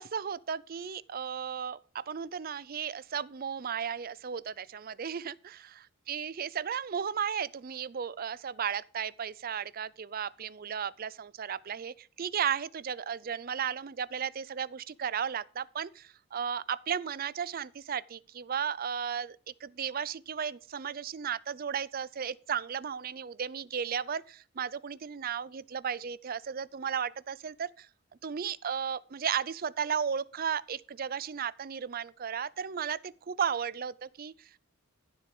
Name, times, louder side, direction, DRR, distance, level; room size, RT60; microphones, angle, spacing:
voice 1, 0.0-1.8 2.1-5.6 6.1-27.9 28.2-34.6, right 7 dB, 45° right, 0.4 m, -35 dB
14.5 x 7.6 x 3.8 m
head